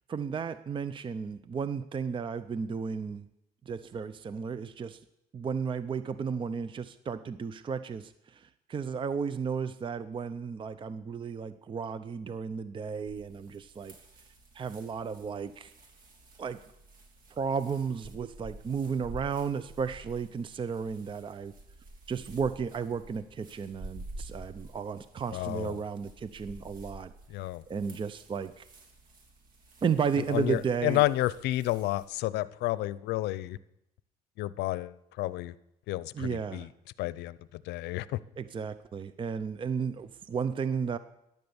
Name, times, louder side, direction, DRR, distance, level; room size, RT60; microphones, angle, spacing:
voice 1, 0.1-3.3 3.7-5.0 5.3-13.9 14.5-15.7 16.4-16.6 17.3-21.5 22.1-27.1 27.7-28.6 29.8-31.0 36.1-36.7 38.4-41.0, right 6 dB, 30° right, 13 dB, 0.6 m, -33 dB
sound 1, 13.1-32.1, right 2 dB, 55° right, 3.4 m, -50 dB
voice 2, 25.3-25.8 27.3-27.6 30.3-33.6 34.4-35.5 35.9-36.7 37.0-38.2, left 17 dB, 80° left, 18 dB, 0.6 m, -31 dB
15.0 x 10.5 x 7.0 m, 0.84 s
cardioid pair, 110°, 17 cm